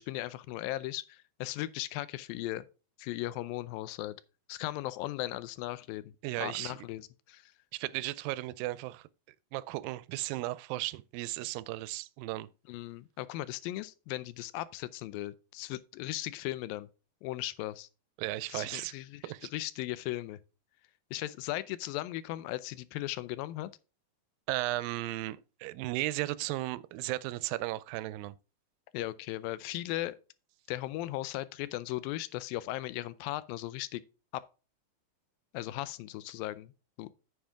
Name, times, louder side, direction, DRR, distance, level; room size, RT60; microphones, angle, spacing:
voice 1, 0.0-2.7 3.0-4.2 4.5-7.5 12.7-16.9 17.2-17.9 18.5-20.4 21.1-23.7 28.9-30.2 30.7-34.0 35.5-36.7 37.0-37.1, left 16 dB, 85° left, 2.4 m, -37 dB
voice 2, 6.2-6.8 7.7-9.1 9.5-12.5 18.2-18.9 19.2-19.5 24.5-28.4, right 17 dB, 85° right, 2.2 m, -35 dB
8.9 x 7.5 x 3.4 m
omnidirectional pair, 4.1 m